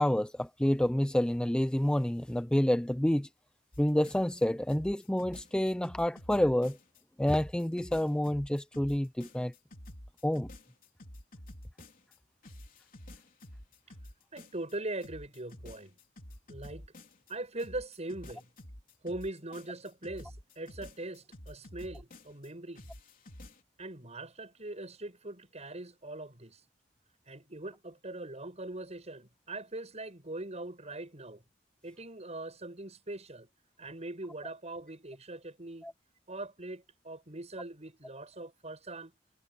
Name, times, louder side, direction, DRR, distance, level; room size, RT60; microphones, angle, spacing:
voice 1, 0.0-3.3 3.8-6.8 7.2-9.5 10.2-10.5 35.8-35.9, left 1 dB, 5° left, 0.4 m, -28 dB
sound 1, 3.7-4.4 4.7-7.0 7.3-12.2 12.4-14.7 15.0-17.3 17.6-22.5 22.8-23.6, left 1 dB, 50° left, 3.5 m, -50 dB
voice 2, 14.3-16.0 16.5-16.9 17.3-18.5 19.0-22.9 23.8-26.6 27.3-31.4 31.8-33.5 33.8-35.9 36.3-39.1, right 2 dB, 35° right, 7.4 m, -41 dB
head